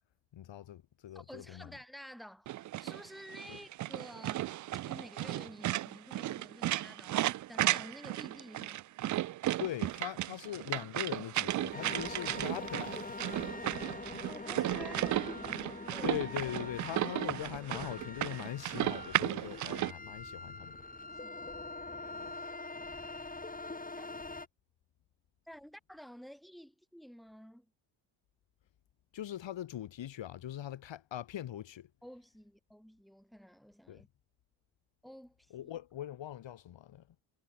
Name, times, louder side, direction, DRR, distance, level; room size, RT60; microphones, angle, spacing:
voice 1, 0.3-1.7 3.5-3.6 9.6-13.2 16.0-20.8 22.1-22.3 29.1-31.9 33.9-34.0 35.5-37.1, left 11 dB, 60° left, 5.2 m, -41 dB
voice 2, 1.1-4.5 4.9-8.8 13.4-16.2 21.1-22.3 24.0-24.1 25.5-27.7 32.0-34.1 35.0-35.7, equal, ahead, 6.5 m, -51 dB
sound 1, 2.5-19.9, right 14 dB, 40° right, 0.4 m, -35 dB
sound 2, 11.7-24.5, left 3 dB, 15° left, 4.1 m, -44 dB
supercardioid pair, 70°, 49 cm